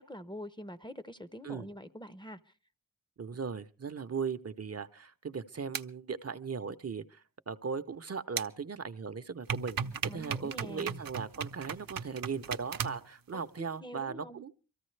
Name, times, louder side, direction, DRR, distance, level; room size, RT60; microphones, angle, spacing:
voice 1, 0.0-2.5 9.8-11.0 13.6-14.4, equal, 15° left, 0.6 m, -45 dB
voice 2, 3.2-9.8 10.1-14.5, right 6 dB, 45° right, 0.7 m, -38 dB
sound 1, 5.7-5.8 8.4-8.5 9.5-13.1, right 7 dB, 80° right, 0.7 m, -36 dB
24.0 x 14.0 x 3.2 m
wide cardioid pair, 80°, 34 cm